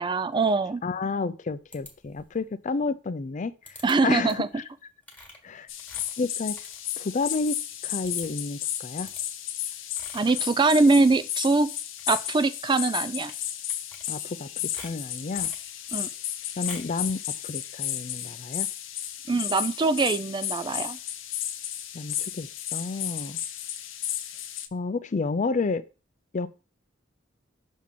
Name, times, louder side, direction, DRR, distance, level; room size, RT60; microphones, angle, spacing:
voice 1, 0.0-0.8 3.8-4.5 10.1-11.7 12.1-13.3 15.9-16.1 19.3-21.0, right 3 dB, 25° right, 13 dB, 0.4 m, -23 dB
voice 2, 0.8-3.5 4.0-4.4 5.4-5.7 6.2-6.5 7.0-7.6 7.8-9.1 14.1-14.5 14.8-15.5 16.6-18.7 21.9-23.4 24.7-25.8 26.3-26.5, left 4 dB, 40° left, 14 dB, 0.4 m, -30 dB
sound 1, 1.7-2.4 3.7-3.9 4.3-4.6 5.0-7.4 7.7-7.8 8.0-8.5 9.0-9.2 9.9-10.5 10.9-11.5 11.8-12.3 13.2-13.4 13.7-14.4 14.7-15.7 16.6-17.0, left 1 dB, 10° left, 1.6 m, -47 dB
sound 2, 5.7-24.7, left 11 dB, 90° left, 0.7 m, -33 dB
6.2 x 3.7 x 5.8 m, 0.33 s
head